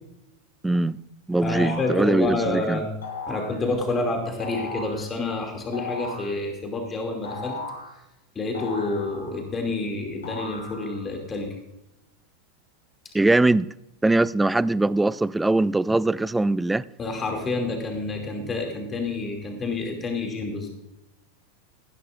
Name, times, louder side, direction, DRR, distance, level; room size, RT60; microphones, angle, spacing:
voice 1, 0.6-1.0 1.3-2.8 13.1-13.7 14.0-16.8, right 2 dB, 10° right, 0.3 m, -21 dB
voice 2, 1.4-2.9 3.3-7.6 8.3-11.5 17.0-20.7, left 2 dB, 25° left, 2.5 m, -28 dB
sound 1, 1.5-2.0 3.0-3.6 4.4-5.0 5.7-6.4 7.2-7.9 8.5-9.5 10.2-11.1, left 3 dB, 75° left, 4.9 m, -36 dB
17.5 x 11.0 x 2.6 m
figure-of-eight pair, 90°, 0 cm